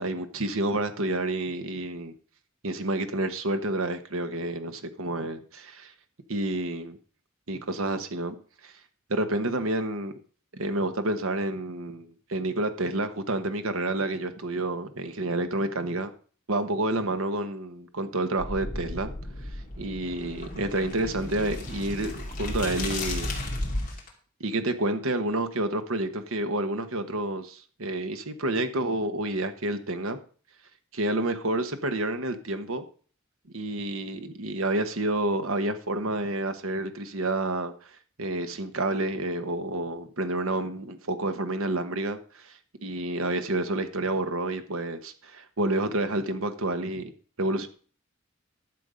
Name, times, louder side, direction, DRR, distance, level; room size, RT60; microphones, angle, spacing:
voice 1, 0.0-2.1 2.6-5.9 6.3-7.0 7.5-8.3 8.6-8.7 9.1-10.1 10.5-16.1 16.5-19.1 19.8-23.3 24.4-30.2 30.9-32.8 33.5-37.9 38.2-47.1 47.4-47.7, right 2 dB, 80° right, 9 dB, 1.2 m, -29 dB
sound 1, 18.4-24.1, left 1 dB, 40° left, 2.7 m, -34 dB
12.0 x 7.1 x 5.1 m, 0.42 s
head